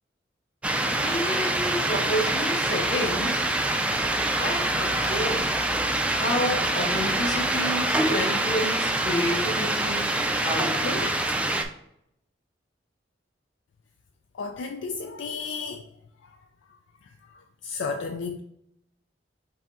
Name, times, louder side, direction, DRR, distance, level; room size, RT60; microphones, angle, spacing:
sound 1, 0.6-11.6, right 1 dB, 5° right, 0.3 m, -25 dB
voice 1, 0.9-3.5 4.4-5.5 6.1-10.1 10.4-11.2, equal, 60° left, 1.8 m, -30 dB
voice 2, 14.4-15.8 17.6-18.4, left 4 dB, 90° left, 0.4 m, -32 dB
5.4 x 2.7 x 3.6 m
head